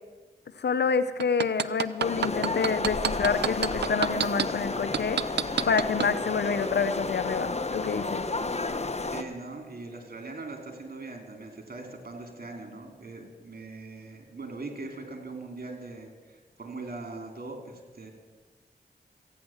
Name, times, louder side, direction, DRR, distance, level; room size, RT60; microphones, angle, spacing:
voice 1, 0.6-5.2 5.6-8.2, left 5 dB, 80° left, 13 dB, 0.7 m, -28 dB
sound 1, 1.2-4.4 4.9-6.1 6.6-6.7, right 9 dB, 90° right, 0.4 m, -26 dB
sound 2, 2.0-9.2, left 3 dB, 40° left, 1.0 m, -31 dB
voice 2, 9.1-18.1, right 3 dB, 60° right, 3 dB, 3.0 m, -41 dB
15.0 x 9.5 x 7.2 m, 1.3 s
cardioid pair, 40°, 17 cm